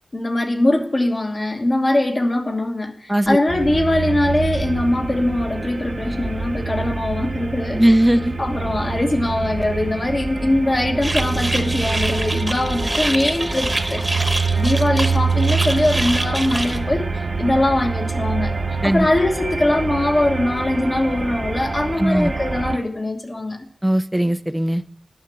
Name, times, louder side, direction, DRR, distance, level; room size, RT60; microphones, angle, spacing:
voice 1, 0.1-7.9 8.4-18.5 18.8-23.6, left 1 dB, 40° left, 3 dB, 1.4 m, -21 dB
sound 1, 3.5-22.8, right 4 dB, 50° right, 0.9 m, -25 dB
voice 2, 7.7-8.4 18.8-19.1 22.0-22.3 23.8-24.8, right 1 dB, 10° right, 14 dB, 0.5 m, -18 dB
sound 2, 11.0-16.8, right 1 dB, 25° right, 1.1 m, -26 dB
10.0 x 6.0 x 6.1 m, 0.67 s
wide cardioid pair, 80°, 0 cm